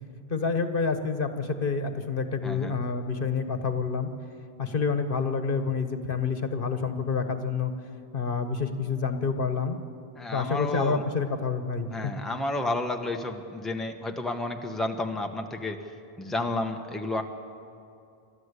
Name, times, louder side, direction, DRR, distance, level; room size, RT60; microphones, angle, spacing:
voice 1, 0.3-4.1 4.6-7.7 8.1-9.8 10.3-12.1, left 5 dB, 60° left, 8 dB, 1.4 m, -28 dB
voice 2, 2.4-2.8 10.2-11.0 11.9-15.9 16.2-17.2, left 2 dB, ahead, 3 dB, 1.2 m, -31 dB
28.0 x 13.5 x 8.3 m, 2.5 s
omnidirectional pair, 1.0 m